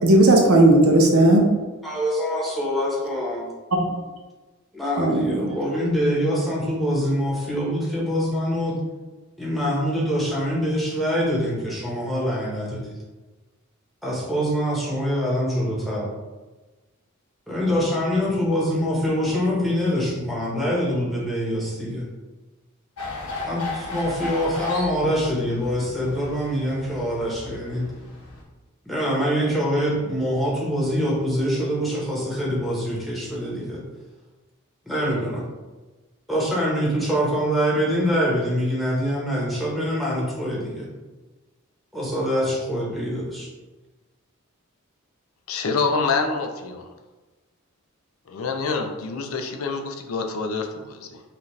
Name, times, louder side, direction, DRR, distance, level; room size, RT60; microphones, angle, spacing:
voice 1, 0.0-1.5 3.8-3.9 5.0-5.6, right 1 dB, 70° right, 1 dB, 0.8 m, -16 dB
voice 2, 1.8-3.5 4.7-8.8 9.4-12.9 14.0-16.1 17.5-22.0 23.4-27.9 28.8-33.8 34.8-35.4 36.3-40.9 41.9-43.5, equal, ahead, -5 dB, 1.2 m, -24 dB
sound 1, 23.0-28.4, left 3 dB, 90° left, 1.1 m, -35 dB
voice 3, 45.5-46.9 48.3-51.2, left 4 dB, 70° left, 4 dB, 0.5 m, -26 dB
5.8 x 2.5 x 3.2 m, 1.2 s
head